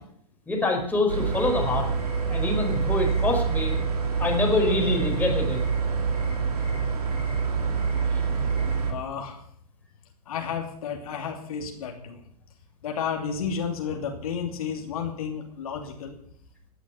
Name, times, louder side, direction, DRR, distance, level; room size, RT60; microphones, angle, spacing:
voice 1, 0.5-1.9 2.3-3.7 4.2-5.6, left 2 dB, 10° left, 0 dB, 4.6 m, -25 dB
sound 1, 1.1-8.9, right 5 dB, 75° right, 3.3 m, -26 dB
voice 2, 8.9-9.4 10.3-12.2 12.8-16.1, left 7 dB, 65° left, 2 dB, 2.8 m, -32 dB
17.0 x 11.0 x 5.8 m, 0.67 s
hypercardioid pair, 105°, 20 cm